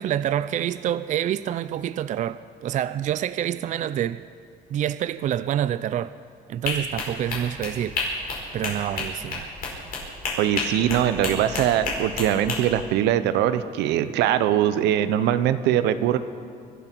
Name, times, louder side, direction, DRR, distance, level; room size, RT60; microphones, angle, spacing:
voice 1, 0.0-4.2 4.7-6.1 6.5-8.0 8.5-9.5, right 11 dB, 45° right, 0.4 m, -27 dB
sound 1, 6.6-12.6, left 3 dB, 60° left, 5.0 m, -30 dB
voice 2, 10.4-16.2, right 11 dB, 85° right, 0.8 m, -22 dB
25.0 x 12.0 x 4.5 m
cardioid pair, 110°, 17 cm